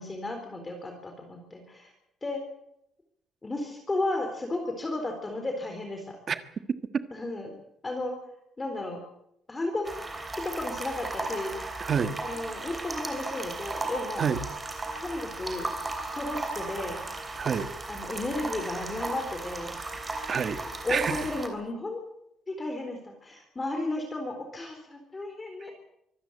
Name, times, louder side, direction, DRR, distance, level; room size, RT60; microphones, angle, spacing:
voice 1, 0.0-1.9 2.2-2.4 3.4-6.2 7.1-7.6 7.8-8.1 8.6-9.0 9.5-9.9 10.4-11.5 12.2-14.3 15.0-15.7 16.1-17.0 17.9-19.8 20.8-22.0 22.5-25.7, left 2 dB, 15° left, 4 dB, 4.0 m, -33 dB
sound 1, 9.8-21.5, right 2 dB, 15° right, 3.3 m, -36 dB
voice 2, 11.8-12.2 14.2-14.4 17.4-17.7 20.3-20.6 20.9-21.2, right 6 dB, 35° right, 10 dB, 1.4 m, -27 dB
24.5 x 15.0 x 8.7 m, 0.77 s
cardioid pair, 165°, 0 cm